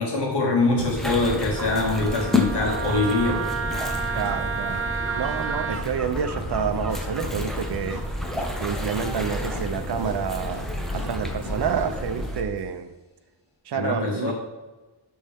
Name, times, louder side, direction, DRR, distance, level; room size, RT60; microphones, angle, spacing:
voice 1, 0.0-3.4 13.7-14.3, left 2 dB, 75° left, -2 dB, 2.3 m, -23 dB
sound 1, 0.6-12.7, equal, 60° left, 2.0 m, -43 dB
sound 2, 0.8-12.4, left 1 dB, ahead, 0.8 m, -30 dB
Wind instrument woodwind instrument, 1.5-5.8, right 6 dB, 35° right, 0.4 m, -31 dB
voice 2, 4.1-4.8 5.1-8.0 8.6-12.9 13.7-14.3, right 7 dB, 75° right, 10 dB, 0.7 m, -29 dB
12.0 x 4.3 x 3.5 m, 1.2 s
wide cardioid pair, 175°, 41 cm